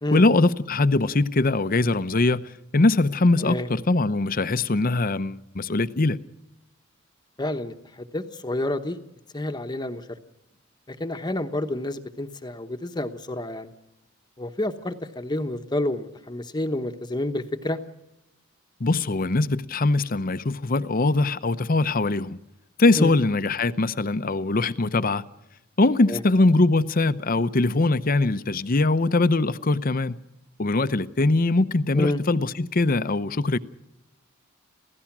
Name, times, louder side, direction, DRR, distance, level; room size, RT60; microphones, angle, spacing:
voice 1, 0.1-6.2 18.8-22.4 22.8-25.2 25.8-30.2 30.6-33.6, left 2 dB, 40° left, 0.7 m, -22 dB
voice 2, 7.4-9.0 9.3-10.0 10.9-13.7 14.4-17.8 23.0-23.1 26.1-26.2 31.9-32.2, left 1 dB, 20° left, 1.1 m, -29 dB
28.0 x 16.0 x 6.1 m
head